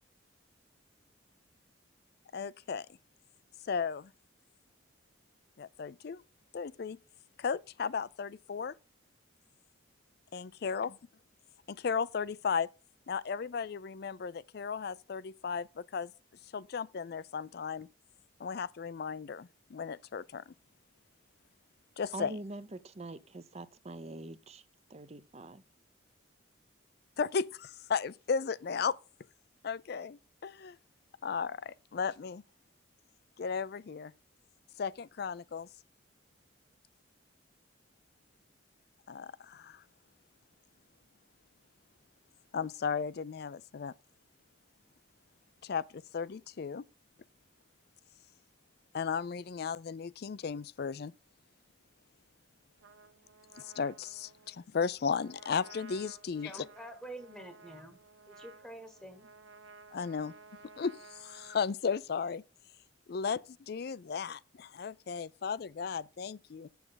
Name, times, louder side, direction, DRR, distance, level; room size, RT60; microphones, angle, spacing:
voice 1, 2.3-2.9 3.7-4.1 5.6-6.2 6.5-7.0 7.4-8.7 10.3-11.0 11.7-12.7 13.1-16.1 16.5-17.9 18.4-20.5 22.0-22.4 27.2-28.9 29.6-30.8 31.2-32.4 33.4-34.1 34.8-35.7 39.1-39.8 42.5-43.9 45.6-46.8 48.9-51.1 53.6-56.7 59.9-60.3 60.8-62.4 63.1-66.7, left 6 dB, 50° left, 0.4 m, -35 dB
voice 2, 22.1-24.6 24.9-25.6, right 2 dB, 30° right, 0.6 m, -44 dB
Trumpet, 52.8-61.7, right 4 dB, 80° right, 0.7 m, -55 dB
voice 3, 56.3-58.0 58.3-59.3, right 1 dB, ahead, 1.1 m, -47 dB
7.3 x 7.0 x 3.9 m
head